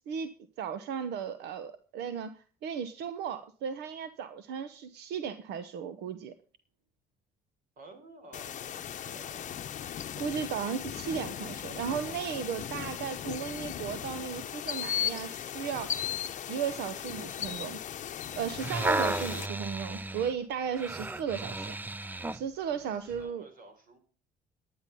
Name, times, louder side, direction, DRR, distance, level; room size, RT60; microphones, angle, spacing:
voice 1, 0.6-6.3 10.2-16.0 16.5-17.8 18.3-21.8 22.3-23.5, right 7 dB, 80° right, 12 dB, 1.0 m, -35 dB
voice 2, 7.8-9.6 22.5-24.0, right 2 dB, 55° right, 7 dB, 4.2 m, -53 dB
sound 1, 8.3-19.5, left 10 dB, 45° left, 0.8 m, -37 dB
sound 2, 18.6-22.5 23.1-23.2, right 2 dB, 10° right, 0.5 m, -33 dB
11.0 x 10.0 x 5.3 m, 0.40 s
cardioid pair, 110°, 17 cm